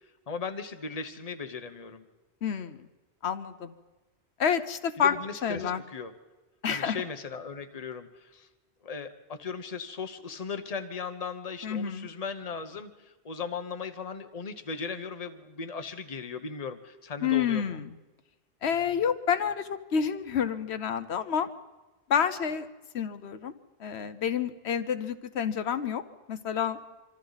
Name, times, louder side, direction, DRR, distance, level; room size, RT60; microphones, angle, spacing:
voice 1, 0.3-2.0 5.0-6.1 6.7-8.5 8.8-17.8, left 5 dB, 35° left, 7 dB, 1.1 m, -37 dB
voice 2, 2.4-2.8 3.2-3.7 4.4-5.1 5.4-5.8 6.6-7.0 11.6-12.1 17.2-17.9 18.6-21.5 22.1-22.7 22.9-23.5 23.8-26.0 26.3-26.8, left 8 dB, 80° left, 10 dB, 1.1 m, -28 dB
26.0 x 24.5 x 4.1 m, 1.2 s
omnidirectional pair, 1.1 m